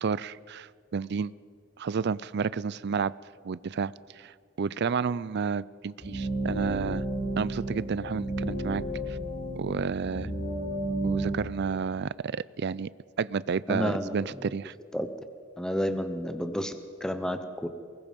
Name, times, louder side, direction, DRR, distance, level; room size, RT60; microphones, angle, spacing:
voice 1, 0.0-1.3 1.8-3.1 3.4-7.0 7.4-8.8 9.1-9.2 9.5-10.3 11.0-12.9 13.2-14.7, right 5 dB, 55° right, 20 dB, 0.4 m, -31 dB
sound 1, 6.0-11.3, right 1 dB, 40° left, 4.9 m, -32 dB
voice 2, 13.7-14.3 14.9-15.1 15.6-16.7 17.0-17.7, equal, 5° left, 9 dB, 0.8 m, -30 dB
23.5 x 20.5 x 5.3 m, 2.2 s
head